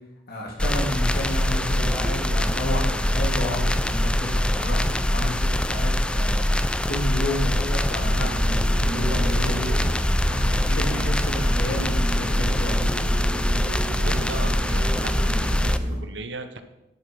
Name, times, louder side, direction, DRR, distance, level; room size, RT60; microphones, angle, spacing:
voice 1, 0.3-6.4 6.9-9.7 10.2-12.8, left 1 dB, 55° left, -1 dB, 2.6 m, -31 dB
sound 1, 0.6-15.8, left 1 dB, 5° left, 0.4 m, -23 dB
sound 2, 8.0-16.0, equal, 40° right, 1.9 m, -31 dB
voice 2, 13.9-16.6, right 3 dB, 65° right, 9 dB, 1.0 m, -37 dB
10.5 x 6.8 x 5.4 m, 0.93 s
head